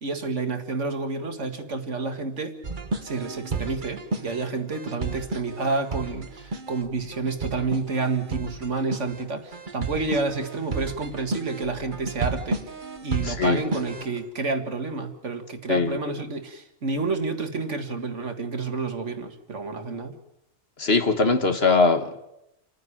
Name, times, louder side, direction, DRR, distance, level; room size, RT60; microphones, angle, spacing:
voice 1, 0.0-2.6 3.0-12.6 13.0-20.2, right 3 dB, 65° right, 6 dB, 2.1 m, -29 dB
sound 1, 2.6-14.2, right 3 dB, 40° right, 1.4 m, -33 dB
voice 2, 13.2-13.6 15.7-16.0 20.8-22.2, left 4 dB, 50° left, 7 dB, 1.7 m, -21 dB
29.0 x 9.9 x 10.0 m, 0.88 s
omnidirectional pair, 1.3 m